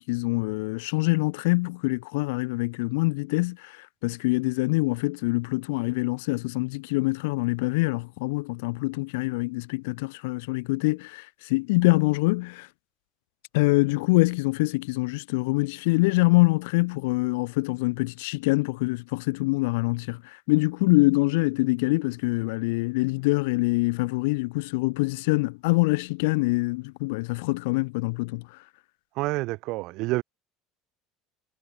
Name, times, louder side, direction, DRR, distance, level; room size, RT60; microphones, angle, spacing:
voice 1, 0.0-12.7 13.5-28.6, left 25 dB, 85° left, 0.4 m, -25 dB
voice 2, 29.1-30.2, right 21 dB, 65° right, 1.6 m, -28 dB
supercardioid pair, 125°, 0 cm